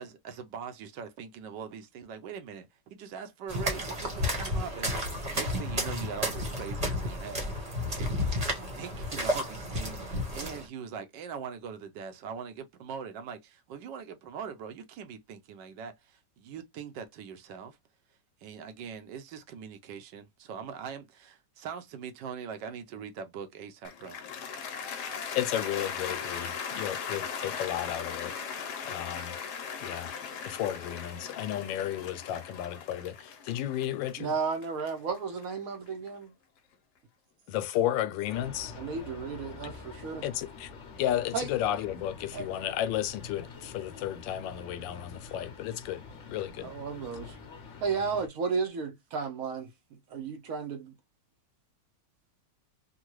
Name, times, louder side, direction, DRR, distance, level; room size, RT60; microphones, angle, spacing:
voice 1, 0.0-17.8 18.4-24.2, right 7 dB, 80° right, 1.3 m, -42 dB
sound 1, 3.5-10.7, left 1 dB, 25° right, 0.9 m, -32 dB
Cheering / Applause, 23.8-36.1, left 6 dB, 70° left, 1.3 m, -38 dB
voice 2, 25.3-28.4 28.9-29.4 29.8-30.1 30.4-34.3 37.5-38.7 40.2-40.7 41.0-46.7, left 12 dB, 90° left, 1.3 m, -33 dB
voice 3, 34.2-36.3 38.8-40.2 41.3-41.5 42.3-42.5 46.6-47.4 47.8-49.7 50.1-50.9, right 5 dB, 65° right, 0.9 m, -33 dB
sound 2, 38.3-48.3, left 4 dB, 50° left, 1.1 m, -46 dB
3.7 x 2.2 x 2.9 m
omnidirectional pair, 2.0 m